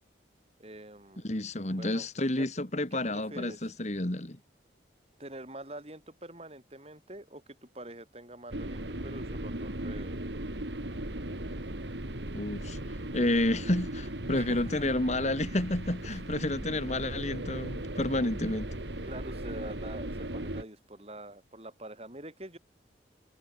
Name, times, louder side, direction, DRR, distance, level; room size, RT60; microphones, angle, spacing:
voice 1, 0.6-1.2 1.7-2.1 2.4-2.5 2.9-3.6 5.2-10.2 14.3-14.7 16.0-16.2 19.0-22.6, right 1 dB, 35° right, 7.2 m, -45 dB
voice 2, 1.2-4.4 12.3-12.8 13.1-18.7, left 1 dB, 40° left, 1.9 m, -30 dB
sound 1, 8.5-20.6, right 1 dB, 70° right, 3.0 m, -37 dB
head